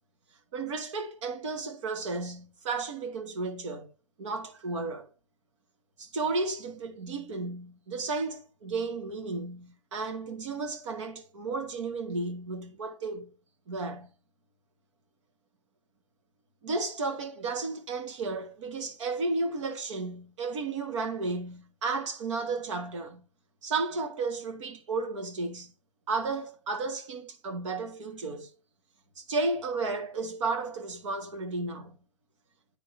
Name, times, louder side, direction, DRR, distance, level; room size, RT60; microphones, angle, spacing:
voice 1, 0.5-3.9 4.2-5.1 6.0-13.3 13.7-14.1 16.6-23.2 23.6-25.7 26.1-28.5 29.2-32.0, right 3 dB, 50° right, 1.5 m, -33 dB
10.0 x 3.7 x 3.1 m
hypercardioid pair, 165°, 19 cm